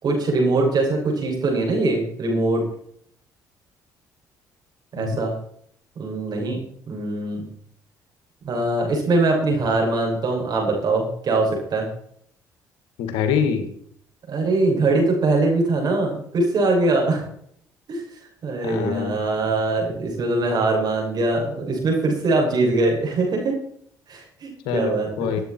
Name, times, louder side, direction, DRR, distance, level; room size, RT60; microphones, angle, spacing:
voice 1, 0.0-2.6 4.9-5.3 5.9-6.6 6.9-7.4 8.4-11.9 14.3-17.2 17.9-18.0 18.4-23.5 24.1-25.3, right 2 dB, 55° right, 0 dB, 6.6 m, -22 dB
voice 2, 13.0-13.7 18.6-19.2 24.6-25.4, left 7 dB, 80° left, 8 dB, 1.9 m, -25 dB
19.0 x 9.1 x 4.5 m, 0.66 s
supercardioid pair, 65°, 8 cm